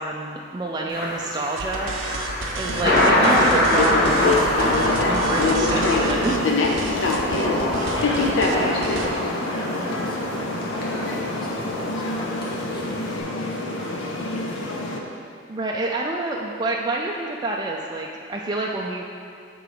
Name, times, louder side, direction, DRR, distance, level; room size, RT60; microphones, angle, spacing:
voice 1, 0.0-1.9 2.5-4.5 5.0-6.4 15.5-19.0, right 2 dB, 20° right, -1 dB, 0.3 m, -28 dB
Thunder, 0.9-13.2, left 1 dB, 55° left, 1.3 m, -25 dB
sound 1, 1.6-9.1, right 3 dB, 75° right, 0.5 m, -32 dB
sound 2, 2.6-15.0, left 2 dB, 70° left, 0.6 m, -25 dB
voice 2, 6.9-7.2 7.5-14.7, equal, 25° left, -5 dB, 0.8 m, -39 dB
6.6 x 3.8 x 4.8 m, 2.4 s
head